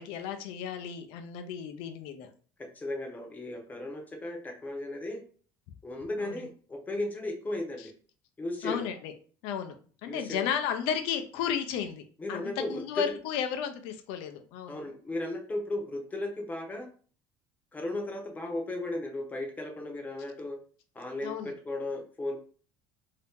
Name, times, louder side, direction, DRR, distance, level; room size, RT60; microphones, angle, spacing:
voice 1, 0.0-2.3 6.2-6.4 8.6-9.1 9.4-9.8 10.0-12.0 12.3-14.8 21.2-21.5, left 8 dB, 75° left, 6 dB, 0.6 m, -33 dB
voice 2, 2.7-5.2 5.8-7.9 8.4-8.9 10.1-10.5 12.2-13.1 14.7-16.9 17.7-20.6 20.9-22.4, left 1 dB, 15° left, 2 dB, 0.8 m, -35 dB
2.8 x 2.8 x 3.5 m, 0.43 s
cardioid pair, 125°, 9 cm